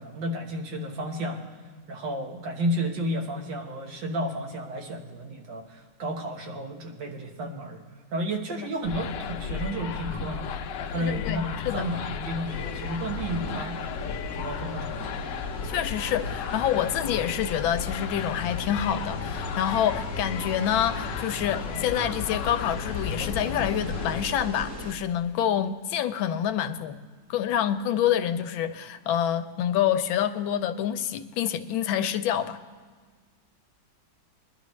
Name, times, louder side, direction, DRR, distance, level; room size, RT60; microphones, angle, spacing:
voice 1, 0.0-1.4 1.9-7.8 8.1-10.5 10.9-13.8 14.3-15.2, right 1 dB, 70° right, 2 dB, 2.0 m, -32 dB
sound 1, 8.8-24.2, left 6 dB, 70° left, 1.2 m, -34 dB
voice 2, 11.0-11.9 15.6-27.0 27.3-32.6, left 10 dB, 90° left, 11 dB, 1.4 m, -27 dB
sound 2, 12.4-24.9, equal, 40° right, 1.9 m, -39 dB
22.0 x 11.5 x 3.1 m, 1.5 s
omnidirectional pair, 2.1 m